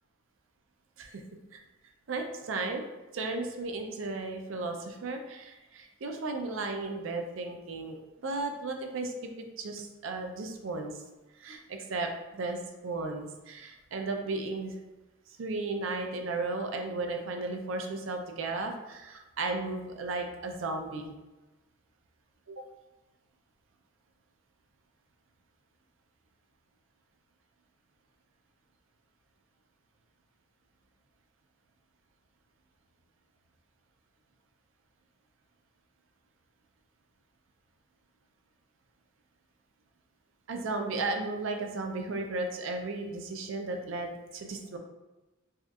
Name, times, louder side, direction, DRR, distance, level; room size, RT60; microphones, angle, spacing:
voice 1, 2.1-2.8 3.1-8.0 8.2-9.3 9.6-11.0 11.3-14.7 15.3-21.1 22.5-22.6 40.5-44.8, right 3 dB, 65° right, 4 dB, 0.4 m, -35 dB
4.2 x 2.3 x 2.3 m, 1.1 s
head